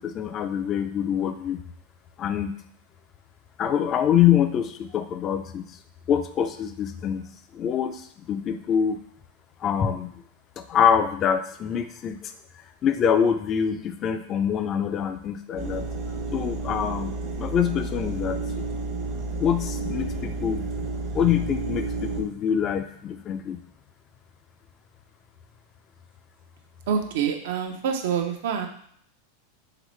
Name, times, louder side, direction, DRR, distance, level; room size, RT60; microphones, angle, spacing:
voice 1, 0.0-1.6 2.2-2.6 3.6-5.7 6.1-7.3 7.5-9.0 9.6-10.2 10.6-12.3 12.8-15.8 16.3-18.4 19.4-20.7 21.1-23.6, left 8 dB, 35° left, 8 dB, 0.4 m, -25 dB
sound 1, 15.6-22.2, right 3 dB, 50° right, 0.9 m, -31 dB
voice 2, 26.9-28.7, right 7 dB, 70° right, 4 dB, 0.6 m, -26 dB
3.9 x 3.0 x 3.1 m, 0.65 s
hypercardioid pair, 120°, 0 cm